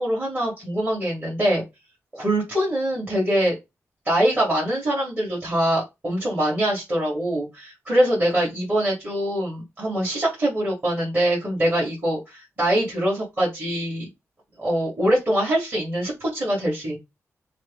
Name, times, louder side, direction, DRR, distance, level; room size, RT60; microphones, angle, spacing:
voice 1, 0.0-1.6 2.1-3.6 4.1-14.1 14.6-17.0, right 1 dB, 30° right, -5 dB, 2.4 m, -23 dB
6.2 x 2.1 x 3.9 m, 0.21 s
wide cardioid pair, 135°, 5 cm